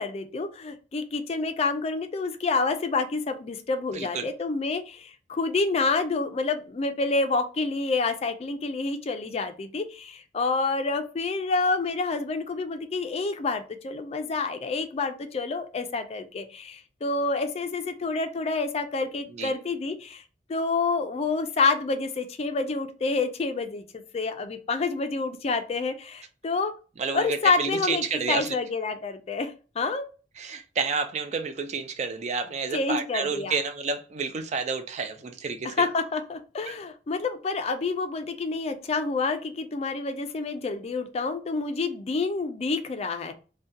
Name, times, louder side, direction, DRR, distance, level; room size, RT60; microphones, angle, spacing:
voice 1, 0.0-20.2 20.5-26.7 27.1-30.0 32.7-33.5 35.6-43.3, left 3 dB, 35° left, 0.3 m, -28 dB
voice 2, 3.9-4.3 19.3-19.5 27.0-28.6 30.4-35.8 36.7-36.8, right 5 dB, 40° right, 0.4 m, -30 dB
2.7 x 2.2 x 2.3 m
head